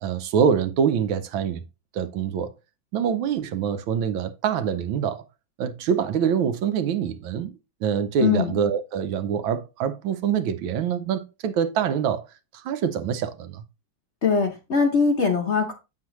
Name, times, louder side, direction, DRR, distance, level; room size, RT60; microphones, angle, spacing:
voice 1, 0.0-1.6 1.9-2.5 2.9-5.2 5.6-7.5 7.8-12.3 12.6-13.6, right 7 dB, 80° right, 1.5 m, -25 dB
voice 2, 8.2-8.5 14.2-15.7, left 5 dB, 50° left, 0.8 m, -21 dB
7.5 x 6.6 x 3.0 m
omnidirectional pair, 2.1 m